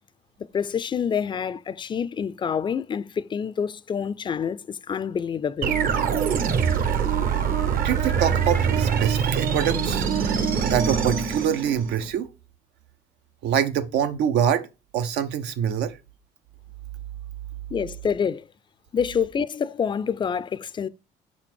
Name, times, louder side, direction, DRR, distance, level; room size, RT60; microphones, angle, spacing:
voice 1, 0.5-5.8 17.7-18.5 18.9-20.9, left 7 dB, 30° left, 0.4 m, -27 dB
sound 1, 5.6-12.1, right 7 dB, 60° right, 1.0 m, -24 dB
voice 2, 7.7-10.0 10.6-12.3 13.4-14.7 14.9-16.0, right 9 dB, 85° right, 0.8 m, -25 dB
5.8 x 4.3 x 4.4 m
cardioid pair, 110°, 17 cm